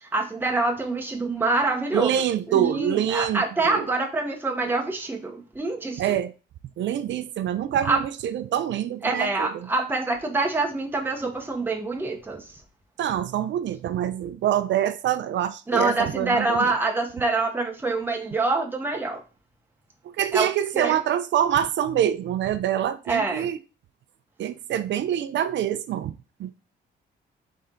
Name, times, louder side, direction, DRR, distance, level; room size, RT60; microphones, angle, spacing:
voice 1, 0.0-2.1 2.5-6.2 7.8-8.0 9.0-12.4 15.7-19.2 20.3-20.5 20.7-21.0 23.1-23.5, right 3 dB, 10° right, 0.9 m, -25 dB
voice 2, 1.9-3.9 6.0-6.3 6.8-9.7 13.0-16.7 20.2-23.6 24.4-26.1 26.4-26.5, right 10 dB, 65° right, 0.5 m, -25 dB
4.2 x 3.3 x 3.7 m
cardioid pair, 90°, 20 cm